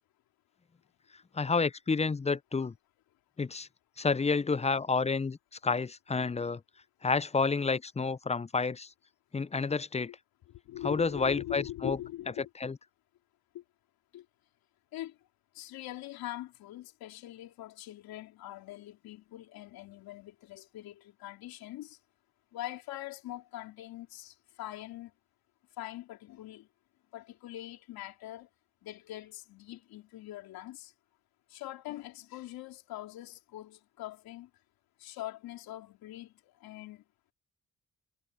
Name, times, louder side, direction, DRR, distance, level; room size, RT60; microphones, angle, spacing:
voice 1, 1.3-2.7 3.4-3.7 4.0-5.4 5.6-6.6 7.0-8.9 9.3-10.1 10.8-12.0 12.6-12.8, left 4 dB, 20° left, 0.5 m, -29 dB
voice 2, 10.5-12.5 13.5-13.6 14.1-14.2 14.9-15.2 15.5-22.0 22.5-25.1 25.8-26.7 27.1-28.5 28.8-30.9 31.5-34.5 35.0-37.0, left 14 dB, 85° left, 3.4 m, -43 dB
supercardioid pair, 50°, 35 cm